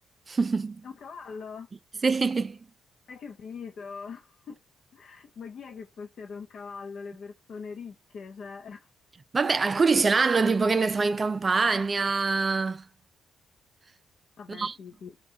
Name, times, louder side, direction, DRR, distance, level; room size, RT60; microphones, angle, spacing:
voice 1, 0.3-0.8 2.0-2.6 9.3-12.8 14.5-14.8, right 4 dB, 30° right, 0.4 m, -24 dB
voice 2, 0.8-1.7 3.1-4.6 4.9-8.9 14.4-15.2, left 5 dB, 60° left, 0.6 m, -42 dB
5.4 x 2.3 x 3.8 m
cardioid pair, 90°, 0 cm